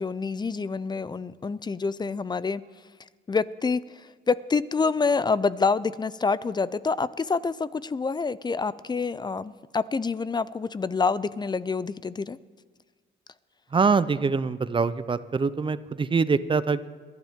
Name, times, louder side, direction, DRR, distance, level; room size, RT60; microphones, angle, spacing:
voice 1, 0.0-2.6 3.3-12.4, left 4 dB, 20° left, 17 dB, 0.4 m, -27 dB
voice 2, 13.7-16.9, right 4 dB, 25° right, 15 dB, 0.6 m, -24 dB
21.5 x 12.0 x 3.7 m, 1.5 s
cardioid pair, 90°, 20 cm